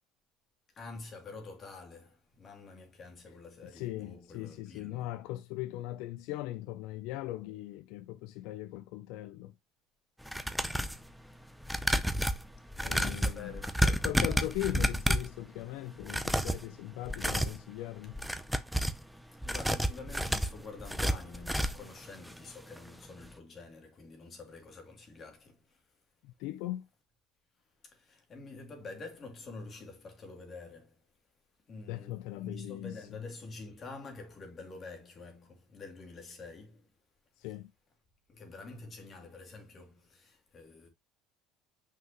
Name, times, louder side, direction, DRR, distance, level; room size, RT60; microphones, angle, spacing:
voice 1, 0.7-5.1 12.8-14.1 14.5-14.6 19.4-25.8 27.8-31.0 31.7-36.9 37.4-37.5 38.3-40.9, left 3 dB, 30° left, 2.7 m, -47 dB
voice 2, 3.7-9.5 12.8-13.5 14.0-18.2 26.2-26.9 31.9-33.0 37.4-37.7, left 15 dB, 75° left, 0.5 m, -39 dB
sound 1, 10.2-11.0 11.6-15.4 16.0-16.6 17.0-17.6 18.1-19.0 19.4-21.9 22.3-22.4 22.7-22.8, equal, ahead, 0.6 m, -30 dB
5.9 x 5.6 x 3.0 m
cardioid pair, 140°, 0 cm